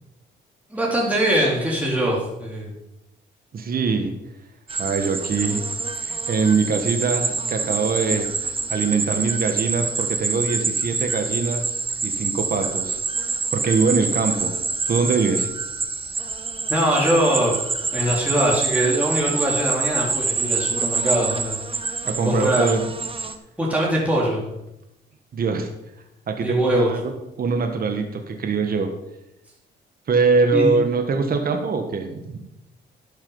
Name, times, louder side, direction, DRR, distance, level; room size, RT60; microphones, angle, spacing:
voice 1, 0.7-2.7 16.7-17.6 17.9-21.6 22.2-22.8 23.6-24.4 26.4-26.9 30.5-30.8, right 1 dB, 5° right, -4 dB, 3.3 m, -22 dB
voice 2, 3.5-4.1 4.7-5.6 5.9-11.7 12.0-13.0 13.3-14.5 14.9-15.5 22.0-22.8 25.3-25.7 26.3-28.9 30.1-32.5, right 4 dB, 50° right, 5 dB, 1.5 m, -23 dB
sound 1, 4.7-23.4, right 4 dB, 25° right, 1.1 m, -26 dB
12.0 x 7.3 x 5.5 m, 0.89 s
cardioid pair, 90°, 20 cm